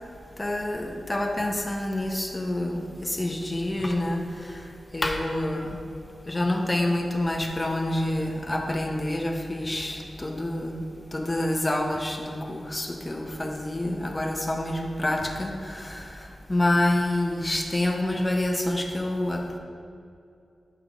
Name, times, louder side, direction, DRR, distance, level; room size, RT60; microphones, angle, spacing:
voice 1, 0.4-4.2 4.9-5.7 6.3-10.8 11.1-16.0 16.5-19.4, left 1 dB, 20° left, 2 dB, 0.7 m, -27 dB
7.6 x 3.3 x 4.9 m, 2.5 s
wide cardioid pair, 100°, 0 cm